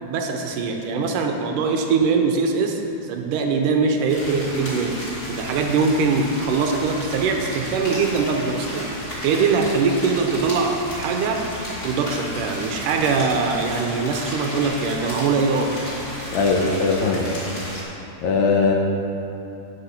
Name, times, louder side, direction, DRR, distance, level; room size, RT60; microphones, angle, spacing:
voice 1, 0.0-9.0 9.2-11.5 11.8-15.8, right 4 dB, 75° right, 3 dB, 2.2 m, -22 dB
sound 1, 4.1-17.8, equal, 25° left, 3.2 m, -33 dB
voice 2, 16.3-17.3 18.2-18.7, left 4 dB, 70° left, -1 dB, 2.0 m, -20 dB
10.5 x 8.2 x 5.8 m, 2.9 s
omnidirectional pair, 4.0 m